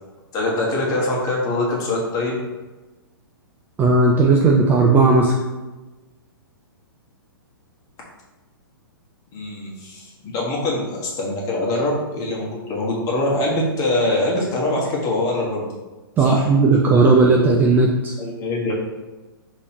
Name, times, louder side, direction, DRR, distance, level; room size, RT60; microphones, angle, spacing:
voice 1, 0.3-2.4 9.3-15.7 16.2-16.5 18.2-18.7, left 2 dB, 30° left, -3 dB, 1.3 m, -23 dB
voice 2, 3.8-5.3 16.2-18.1, right 3 dB, 15° right, -1 dB, 0.4 m, -15 dB
5.4 x 3.0 x 2.9 m, 1.1 s
figure-of-eight pair, 120°, 12 cm